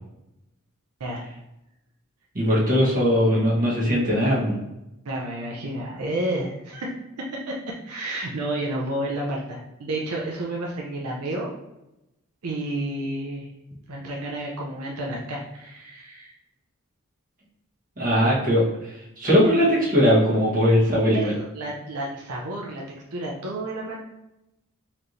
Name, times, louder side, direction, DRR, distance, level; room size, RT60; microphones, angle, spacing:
voice 1, 1.0-1.3 5.0-11.5 12.4-13.5 13.9-16.3 21.1-24.0, right 1 dB, 90° right, -2 dB, 0.7 m, -31 dB
voice 2, 2.3-4.6 18.0-21.3, equal, 40° right, -6 dB, 1.3 m, -20 dB
4.4 x 3.1 x 2.7 m, 0.90 s
head